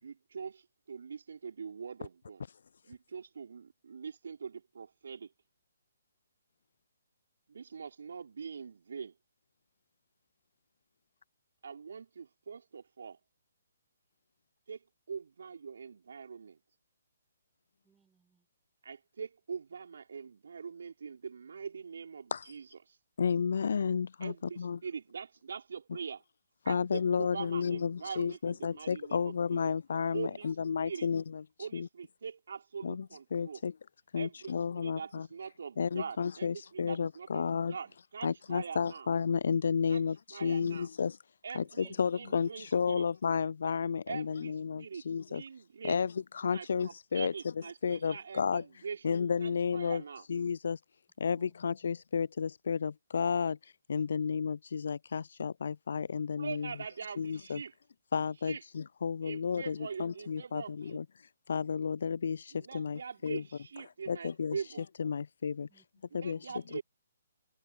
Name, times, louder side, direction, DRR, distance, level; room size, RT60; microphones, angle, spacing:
voice 1, 0.0-2.4 2.9-5.3 7.5-9.1 11.6-13.2 14.7-16.6 18.8-23.0 24.2-26.2 26.6-29.7 30.1-30.5 30.8-31.1 31.6-33.6 34.2-39.1 39.9-40.0 40.3-40.9 41.4-43.1 44.1-46.0 46.5-50.2 56.4-57.7 58.4-58.6 59.2-61.0 62.5-64.9 66.1-66.8, right 6 dB, 60° right, 4.5 m, -43 dB
voice 2, 17.8-18.5 41.8-42.3 51.2-51.5 65.7-66.7, right 6 dB, 10° right, 7.0 m, -66 dB
voice 3, 23.2-24.8 26.7-31.4 31.7-31.9 32.8-33.7 34.1-35.3 35.8-37.7 38.2-41.2 41.5-45.4 45.8-47.3 47.8-48.6 49.0-50.0 50.3-50.8 51.2-56.7 57.2-57.6 58.1-61.1 61.5-63.4 64.1-64.6 65.0-65.7 66.1-66.4 66.7-66.8, left 6 dB, 60° left, 0.4 m, -32 dB
figure-of-eight pair, 135°, 0 cm